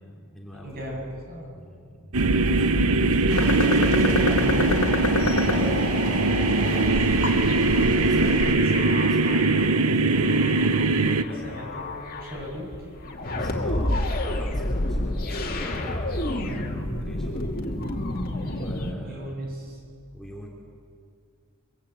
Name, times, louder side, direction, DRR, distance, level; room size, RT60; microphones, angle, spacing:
voice 1, 0.0-1.0 1.5-2.1 3.3-4.6 7.5-10.1 11.2-11.8 13.4-17.6 18.5-19.4 20.1-20.5, equal, ahead, -3 dB, 3.0 m, -41 dB
voice 2, 0.6-1.5 3.8-4.5 5.5-6.0 6.4-7.8 11.4-12.9 18.4-19.8, equal, 45° right, 0 dB, 7.5 m, -37 dB
sound 1, 2.1-11.2, right 3 dB, 90° right, 1.0 m, -21 dB
sound 2, 3.3-8.5, left 2 dB, 80° left, 1.9 m, -28 dB
sound 3, 4.4-18.9, left 1 dB, 40° left, 2.4 m, -31 dB
25.0 x 24.0 x 8.5 m, 2.2 s
head